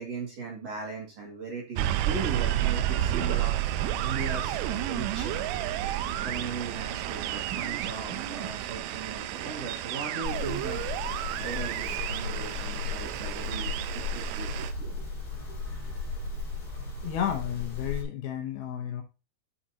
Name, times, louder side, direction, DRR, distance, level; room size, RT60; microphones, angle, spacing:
voice 1, 0.0-3.5 4.0-5.5 6.1-10.8 11.4-15.1 15.5-15.6, right 4 dB, 45° right, -1 dB, 2.6 m, -38 dB
sound 1, 1.8-14.7, right 12 dB, 90° right, 2.8 m, -31 dB
sound 2, 10.2-18.0, left 4 dB, 15° left, 2.3 m, -35 dB
voice 2, 17.0-19.0, left 9 dB, 75° left, 3 dB, 2.5 m, -32 dB
9.8 x 5.8 x 2.8 m, 0.30 s
omnidirectional pair, 4.9 m